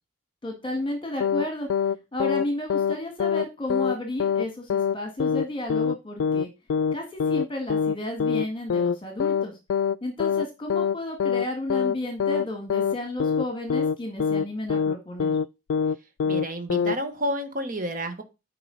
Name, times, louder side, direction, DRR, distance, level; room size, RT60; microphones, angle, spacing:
voice 1, 0.4-1.7 2.1-6.5 6.9-9.6 10.0-15.3, left 1 dB, 25° left, 3 dB, 1.8 m, -32 dB
sound 1, 1.2-1.5 1.7-2.5 2.7-3.0 3.2-3.5 3.7-4.0 4.2-4.5 4.7-5.0 5.2-5.5 5.7-6.0 6.2-6.5 6.7-7.0 7.2-7.5 7.7-8.5 8.7-9.0 9.2-9.5 9.7-10.0 10.2-10.5 10.7-11.0 11.2-11.5 11.7-12.0 12.2-12.5 12.7-13.0 13.2-13.5 13.7-14.0 14.2-14.5 14.7-15.0 15.2-15.5 15.7-16.0 16.2-16.5 16.7-17.0, left 6 dB, 75° left, 0.3 m, -24 dB
voice 2, 16.3-18.2, right 1 dB, 40° right, 7 dB, 1.3 m, -30 dB
9.6 x 4.9 x 4.0 m, 0.26 s
head